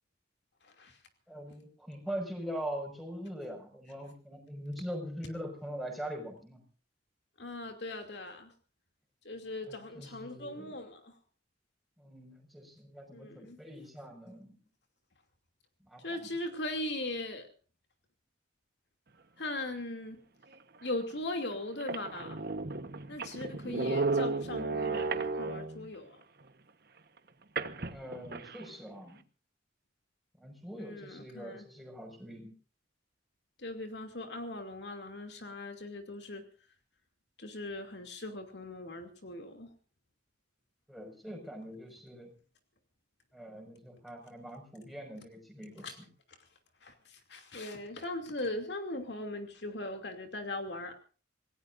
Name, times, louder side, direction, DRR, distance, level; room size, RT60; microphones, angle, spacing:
voice 1, 0.6-1.0 7.4-8.5 9.2-11.1 13.1-13.6 16.0-17.5 19.4-20.2 20.8-22.4 23.1-26.2 30.8-31.6 33.6-36.4 37.4-39.7 45.8-46.0 46.8-50.9, left 2 dB, 65° left, 5 dB, 2.8 m, -39 dB
voice 2, 1.3-6.6 9.7-10.7 12.0-14.5 15.8-16.3 27.9-29.2 30.4-32.5 40.9-42.3 43.3-46.0, equal, ahead, 2 dB, 5.9 m, -42 dB
sound 1, 20.9-21.0 21.5-21.6 21.8-25.9 27.6-28.6, right 3 dB, 55° right, 1.3 m, -34 dB
28.0 x 17.5 x 2.6 m, 0.39 s
head